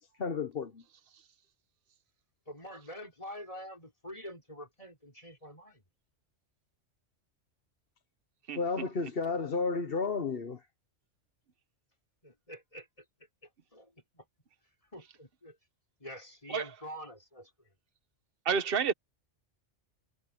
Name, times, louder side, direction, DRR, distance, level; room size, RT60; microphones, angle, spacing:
voice 1, 0.2-0.8 8.5-10.6, left 4 dB, 50° left, 1.3 m, -32 dB
voice 2, 2.5-5.8 12.2-12.9 13.7-14.2 14.9-15.6 16.0-17.5, equal, 30° left, 5.5 m, -46 dB
voice 3, 18.4-18.9, right 6 dB, 50° right, 1.3 m, -29 dB
omnidirectional pair, 1.3 m